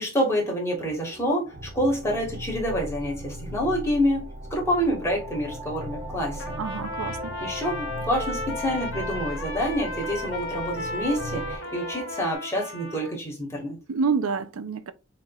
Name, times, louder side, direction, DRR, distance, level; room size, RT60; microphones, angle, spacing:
voice 1, 0.0-4.2 4.5-6.6 7.4-13.8, equal, 15° left, 1.7 m, -27 dB
sound 1, 0.8-12.3, right 1 dB, 30° right, 0.6 m, -39 dB
sound 2, 1.5-11.6, equal, 60° right, 0.9 m, -39 dB
Trumpet, 6.4-13.1, left 2 dB, 60° left, 0.9 m, -36 dB
voice 2, 6.6-7.4 13.9-14.9, right 5 dB, 90° right, 0.5 m, -27 dB
6.3 x 3.0 x 2.3 m
head